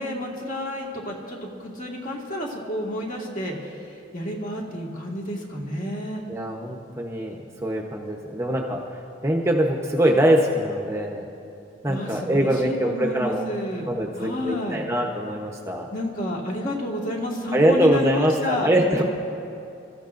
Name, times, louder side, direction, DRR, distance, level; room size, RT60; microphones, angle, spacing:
voice 1, 0.0-6.2 11.9-14.8 15.9-18.7 19.0-19.1, left 1 dB, 40° left, -2 dB, 1.9 m, -30 dB
voice 2, 6.3-8.8 9.2-11.3 11.8-13.5 13.9-15.9 17.5-19.0, right 1 dB, 15° right, 0 dB, 0.9 m, -23 dB
28.0 x 14.0 x 2.6 m, 2.8 s
head